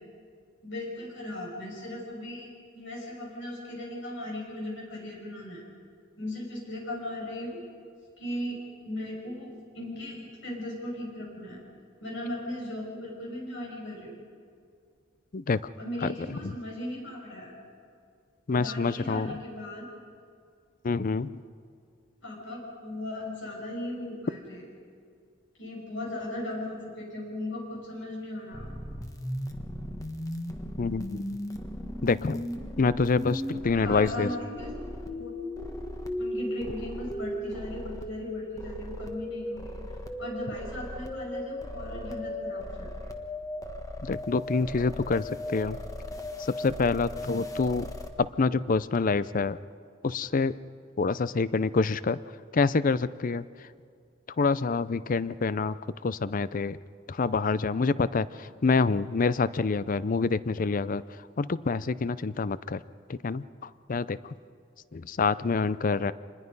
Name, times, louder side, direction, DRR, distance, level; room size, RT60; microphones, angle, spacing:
voice 1, 0.6-5.6 6.2-7.6 8.2-8.6 8.8-11.6 12.0-14.1 15.8-17.5 18.5-19.9 22.2-24.6 25.6-28.7 33.6-34.7 35.2-35.4 36.2-39.8 40.2-42.9, left 1 dB, 70° left, -2 dB, 6.8 m, -37 dB
voice 2, 15.3-15.7 16.0-16.6 18.5-19.4 20.8-21.4 30.8-31.2 32.0-32.4 32.8-34.3 44.0-45.8 46.4-47.9 48.2-49.6 50.0-50.6 51.0-52.2 52.5-53.7 54.4-55.8 56.0-56.8 57.1-61.0 61.4-62.8 63.1-64.4 64.9-66.1, left 4 dB, 45° left, 17 dB, 0.5 m, -27 dB
sound 1, 28.5-48.1, left 1 dB, 20° left, 1.4 m, -37 dB
26.5 x 21.0 x 5.4 m, 2.2 s
head